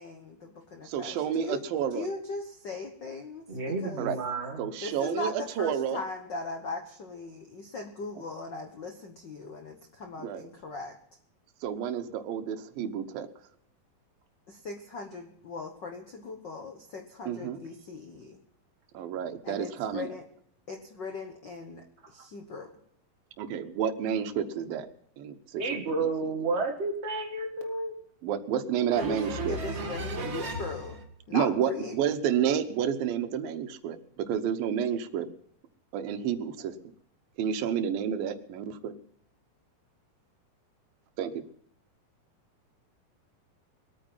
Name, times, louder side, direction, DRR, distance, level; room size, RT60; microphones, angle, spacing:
voice 1, 0.0-1.6 1.9-4.0 4.8-11.0 14.5-18.4 19.4-20.2 20.7-22.7 29.0-29.2 29.5-31.0 31.3-32.0, left 3 dB, 70° left, 5 dB, 1.0 m, -39 dB
voice 2, 0.9-2.1 4.0-4.2 4.6-6.0 10.2-10.4 11.6-13.3 17.3-17.6 18.9-20.1 23.4-24.9 25.2-25.8 28.2-29.6 31.3-35.3 35.9-36.8 37.4-38.9 41.2-41.4, right 8 dB, 80° right, 10 dB, 2.8 m, -30 dB
voice 3, 3.5-4.7 25.6-27.9 28.9-30.8, right 3 dB, 25° right, 3 dB, 1.4 m, -32 dB
21.0 x 9.1 x 5.5 m, 0.68 s
omnidirectional pair, 4.1 m